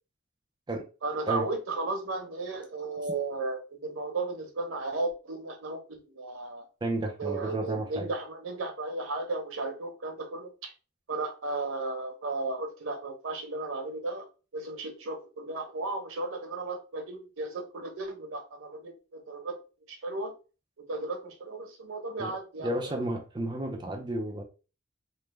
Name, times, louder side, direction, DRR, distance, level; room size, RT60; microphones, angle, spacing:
voice 1, 1.0-5.8 6.1-6.7 7.2-10.7 11.1-14.3 14.5-19.5 19.9-20.3 20.8-23.0, right 3 dB, 90° right, 0.8 m, -35 dB
voice 2, 6.8-8.1 22.2-24.4, right 1 dB, 25° right, 0.4 m, -32 dB
3.2 x 2.0 x 3.2 m
head